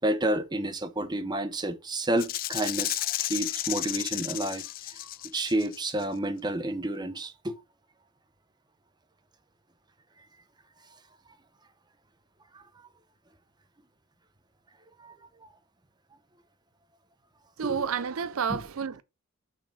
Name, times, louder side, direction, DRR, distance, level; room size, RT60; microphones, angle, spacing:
voice 1, 0.0-4.6 5.0-7.6 12.5-12.6 15.0-15.1 17.6-17.9 18.5-18.7, right 1 dB, 20° right, 0.8 m, -30 dB
Rattle (instrument), 2.2-6.0, left 15 dB, 40° left, 0.3 m, -33 dB
voice 2, 17.6-19.0, right 7 dB, 75° right, 0.5 m, -30 dB
6.0 x 4.3 x 5.0 m
head